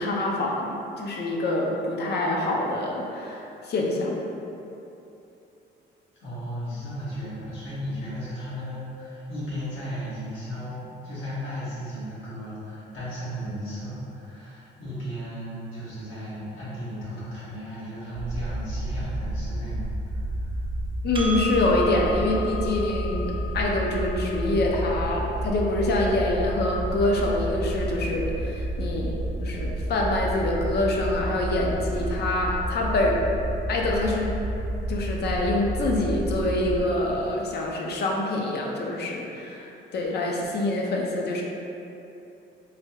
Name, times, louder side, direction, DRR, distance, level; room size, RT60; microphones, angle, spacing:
voice 1, 0.0-4.2 21.0-33.2 33.7-34.3 34.9-41.4, left 2 dB, 55° left, -1 dB, 0.5 m, -26 dB
voice 2, 6.2-19.9 20.2-20.5, equal, 80° left, -11 dB, 1.1 m, -35 dB
sound 1, 18.1-36.8, right 1 dB, 70° right, 0.6 m, -30 dB
Percussion, 21.2-26.0, left 1 dB, 25° right, 0.4 m, -36 dB
3.3 x 2.3 x 2.8 m, 2.9 s
cardioid pair, 90°, 20 cm